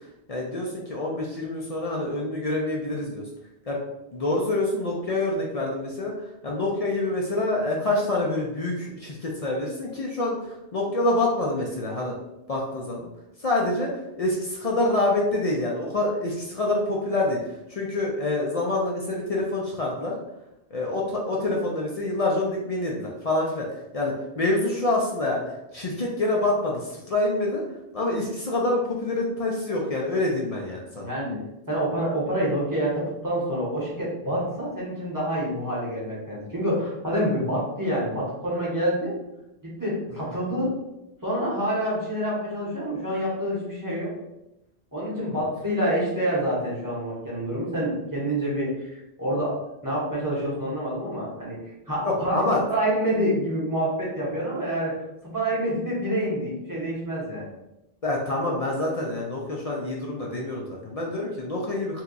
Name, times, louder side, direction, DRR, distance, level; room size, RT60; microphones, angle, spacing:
voice 1, 0.3-3.2 3.7-3.8 4.1-6.1 6.4-10.4 10.7-12.2 12.5-13.1 13.4-13.9 14.2-17.4 17.7-20.1 20.7-23.7 23.9-27.6 27.9-31.1 40.1-40.2 45.3-45.4 52.0-52.6 58.0-62.0, left 2 dB, 50° left, -2 dB, 0.5 m, -26 dB
voice 2, 31.0-31.4 31.7-39.2 39.6-40.7 41.2-44.1 44.9-49.6 49.8-51.6 51.9-52.3 52.7-55.0 55.2-57.5, equal, 20° right, -6 dB, 0.9 m, -27 dB
2.8 x 2.3 x 3.7 m, 0.90 s
omnidirectional pair, 1.0 m